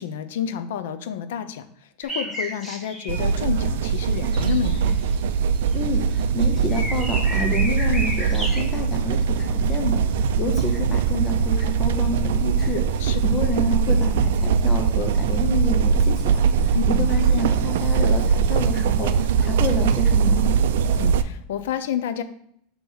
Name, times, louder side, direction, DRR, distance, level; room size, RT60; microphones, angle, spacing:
voice 1, 0.0-1.7 2.0-5.0 13.0-13.2 16.7-17.1 20.8-22.2, left 9 dB, 80° left, 11 dB, 0.6 m, -29 dB
sound 1, 2.0-3.2 3.9-5.2 5.5-5.7 6.2-6.3 6.7-8.6, equal, 5° left, 1.4 m, -32 dB
sound 2, 3.1-21.2, right 6 dB, 80° right, 0.4 m, -21 dB
voice 2, 5.7-20.5, left 2 dB, 20° left, 3 dB, 0.7 m, -29 dB
7.0 x 2.9 x 5.5 m, 0.70 s
supercardioid pair, 170°, 0 cm